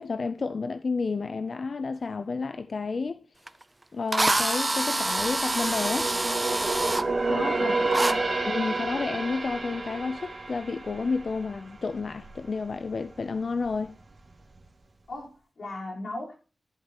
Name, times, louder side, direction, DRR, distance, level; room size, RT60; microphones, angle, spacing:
voice 1, 0.0-3.2 3.9-6.1 7.3-7.8 8.5-14.0, left 4 dB, 60° left, 0.4 m, -31 dB
Drill, 3.5-3.6 4.1-7.0 7.9-8.1, right 2 dB, 20° right, 0.4 m, -26 dB
sound 1, 4.9-12.4 12.7-13.0 13.5-14.2 14.6-14.7, right 3 dB, 45° right, 2.0 m, -30 dB
voice 2, 7.6-8.3 15.1-16.3, left 2 dB, 75° left, 3.9 m, -38 dB
13.5 x 8.2 x 2.9 m
wide cardioid pair, 130°, 0 cm